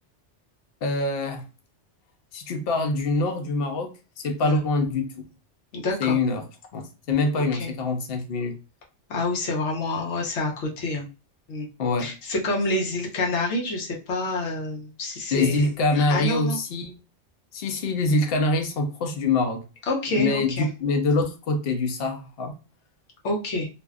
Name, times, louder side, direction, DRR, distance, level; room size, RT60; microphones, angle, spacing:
voice 1, 0.8-1.4 2.3-3.9 4.2-5.1 6.0-6.4 6.7-8.6 11.8-12.1 15.3-17.0 17.5-19.6 20.1-22.5, left 3 dB, 65° left, 0.8 m, -24 dB
voice 2, 5.7-6.2 7.5-7.7 9.1-11.0 11.5-11.7 12.0-16.6 19.9-20.7 23.2-23.7, left 2 dB, 85° left, 1.0 m, -28 dB
2.5 x 2.1 x 2.3 m
omnidirectional pair, 1.2 m